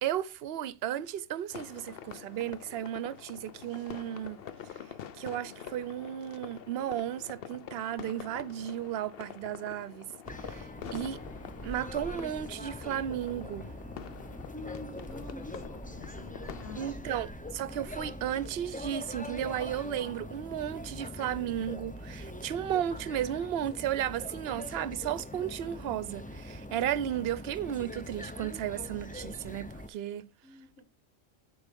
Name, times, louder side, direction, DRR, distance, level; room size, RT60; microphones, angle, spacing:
voice 1, 0.0-4.4 5.2-10.1 10.4-11.2 11.6-13.7 16.8-30.3, right 11 dB, 55° right, 0.8 m, -34 dB
sound 1, 1.5-16.9, left 8 dB, 55° left, 0.8 m, -46 dB
sound 2, 10.2-29.9, left 1 dB, 10° left, 0.4 m, -43 dB
voice 2, 14.4-17.2 30.4-30.8, left 2 dB, 90° left, 4.1 m, -47 dB
8.2 x 6.3 x 5.2 m
omnidirectional pair, 1.4 m